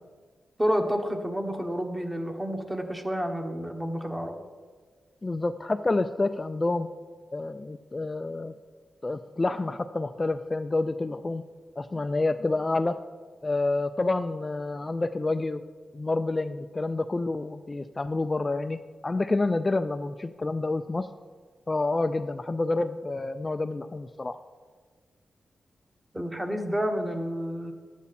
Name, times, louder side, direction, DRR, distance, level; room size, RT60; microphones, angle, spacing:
voice 1, 0.6-4.4 26.1-27.7, equal, 15° right, 4 dB, 1.2 m, -29 dB
voice 2, 5.2-6.9 7.3-8.5 9.0-11.4 11.8-13.0 13.4-15.6 15.9-18.8 19.0-21.1 21.7-24.4, left 2 dB, 25° left, 9 dB, 0.3 m, -28 dB
11.5 x 8.4 x 4.2 m, 1.5 s
cardioid pair, 95°, 0 cm